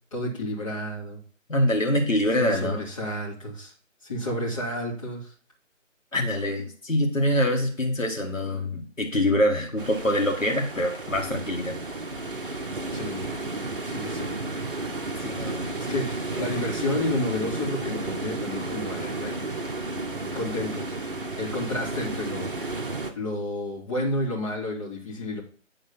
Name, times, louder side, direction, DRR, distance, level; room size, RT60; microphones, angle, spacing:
voice 1, 0.1-1.2 2.4-3.7 4.0-5.3 12.9-13.4 13.8-14.6 15.8-16.1 16.3-21.0 21.4-22.5 23.2-25.4, left 1 dB, 25° left, -6 dB, 2.5 m, -31 dB
voice 2, 1.5-2.8 6.1-11.8 15.2-15.7, left 1 dB, 80° left, 2 dB, 2.0 m, -25 dB
sound 1, 9.8-23.1, right 2 dB, 40° right, 1.1 m, -32 dB
9.4 x 3.9 x 5.8 m, 0.42 s
figure-of-eight pair, 160°, 39 cm